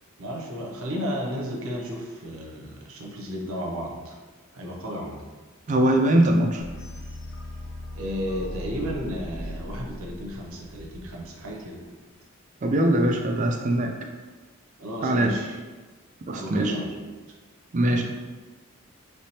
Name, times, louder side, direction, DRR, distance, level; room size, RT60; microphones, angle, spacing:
voice 1, 0.2-4.2 4.5-5.2 7.9-11.9 14.8-15.6 16.3-16.9 17.9-18.0, equal, 70° right, 0 dB, 0.7 m, -33 dB
voice 2, 5.7-6.6 12.6-13.9 15.0-15.3 16.3-16.7 17.7-18.0, right 1 dB, 35° right, 3 dB, 0.3 m, -21 dB
sound 1, 6.6-11.5, left 1 dB, 50° left, 0.6 m, -38 dB
3.3 x 3.2 x 2.8 m, 1.3 s
head